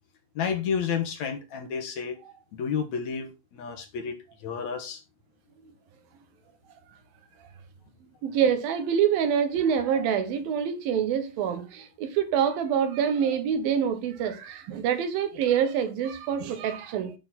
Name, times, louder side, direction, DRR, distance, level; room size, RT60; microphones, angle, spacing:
voice 1, 0.4-2.2 2.5-5.0, left 6 dB, 65° left, 2.2 m, -31 dB
voice 2, 8.2-17.1, right 8 dB, 85° right, 3.1 m, -26 dB
10.5 x 6.3 x 4.3 m
omnidirectional pair, 4.0 m